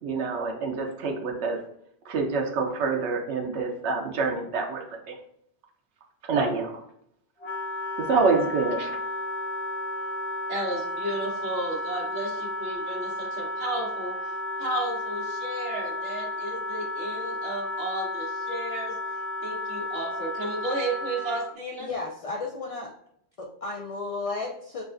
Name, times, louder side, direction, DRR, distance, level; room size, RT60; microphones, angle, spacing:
voice 1, 0.0-1.6 2.1-5.1 6.2-6.7 8.0-9.0, right 4 dB, 90° right, 2 dB, 0.9 m, -26 dB
Wind instrument woodwind instrument, 7.4-21.5, left 2 dB, 80° left, 1.1 m, -33 dB
voice 2, 10.5-14.3 14.6-18.9 19.4-21.9, right 1 dB, 65° right, -3 dB, 1.3 m, -33 dB
voice 3, 21.8-22.9 23.4-24.8, left 3 dB, 60° left, 0 dB, 0.3 m, -33 dB
5.9 x 2.3 x 2.5 m, 0.69 s
omnidirectional pair, 1.1 m